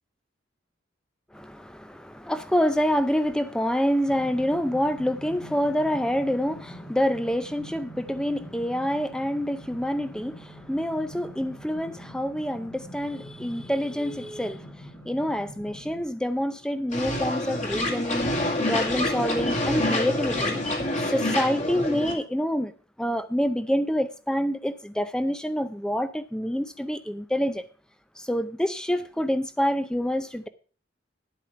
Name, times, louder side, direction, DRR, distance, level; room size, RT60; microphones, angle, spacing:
voice 1, 1.3-14.7 15.0-18.3 18.7-20.6 21.0-22.7 23.0-27.6 28.2-30.5, equal, 5° left, 0.5 m, -27 dB
sound 1, 4.1-16.0, equal, 70° left, 3.9 m, -44 dB
sound 2, 16.9-22.1, left 1 dB, 40° left, 2.3 m, -27 dB
10.5 x 8.5 x 5.6 m
head